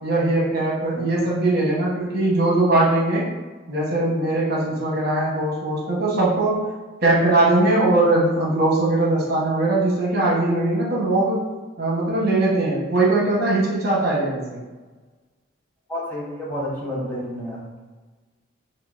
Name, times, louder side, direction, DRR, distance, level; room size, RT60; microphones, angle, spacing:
voice 1, 0.0-3.3 3.7-6.7 7.0-11.4 11.8-14.6, right 2 dB, 50° right, -5 dB, 1.0 m, -20 dB
voice 2, 15.9-17.6, equal, 10° left, -7 dB, 0.7 m, -30 dB
5.4 x 2.1 x 2.4 m, 1.3 s
head